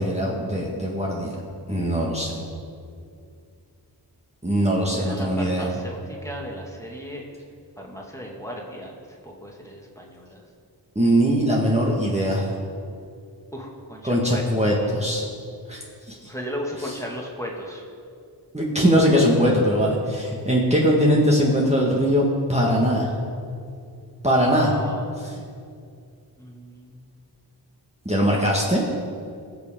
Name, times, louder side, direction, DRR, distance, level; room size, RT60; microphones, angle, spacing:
voice 1, 0.0-1.3 1.7-2.4 4.4-5.7 10.9-12.5 14.0-15.2 15.7-15.8 16.1-16.2 18.5-23.1 24.2-24.7 28.0-28.8, equal, 15° right, -4 dB, 1.7 m, -21 dB
voice 2, 4.9-7.2 7.8-10.4 13.5-14.7 16.2-17.8 24.4-25.1 26.4-27.1, equal, 5° left, -2 dB, 2.1 m, -36 dB
18.5 x 7.0 x 3.8 m, 2.3 s
cardioid pair, 50°, 43 cm